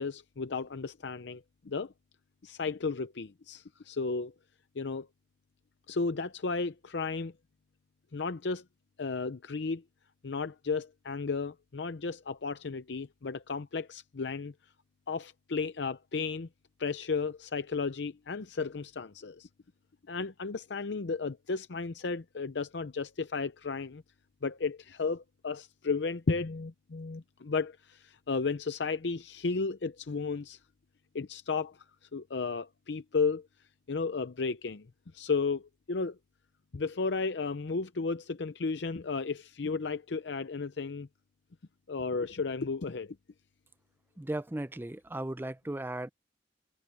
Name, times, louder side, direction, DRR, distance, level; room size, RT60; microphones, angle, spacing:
voice 1, 0.0-1.9 2.4-4.3 4.8-5.1 5.9-7.3 8.1-8.6 9.0-9.8 10.2-14.5 15.1-16.5 16.8-19.5 20.1-24.0 24.4-30.6 31.1-31.8 32.1-33.5 33.9-34.9 35.1-36.2 36.7-41.1 41.9-43.2, left 4 dB, 75° left, 0.6 m, -33 dB
voice 2, 44.2-46.1, right 1 dB, 10° right, 0.5 m, -36 dB
head